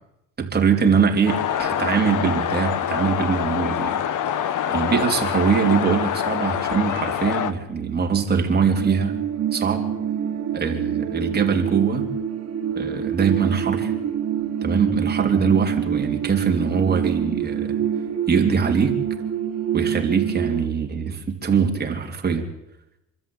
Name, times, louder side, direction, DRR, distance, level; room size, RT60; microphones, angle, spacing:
voice 1, 0.4-4.0 4.7-9.2 9.5-9.9 10.5-12.1 12.8-13.9 14.6-17.8 18.3-19.0 19.7-22.5, right 6 dB, 25° right, 2 dB, 3.4 m, -22 dB
sound 1, 1.3-7.5, left 9 dB, 55° left, 1.3 m, -25 dB
sound 2, 8.8-20.7, right 9 dB, 40° right, 3.0 m, -26 dB
26.0 x 13.5 x 8.8 m, 0.87 s
cardioid pair, 120°, 37 cm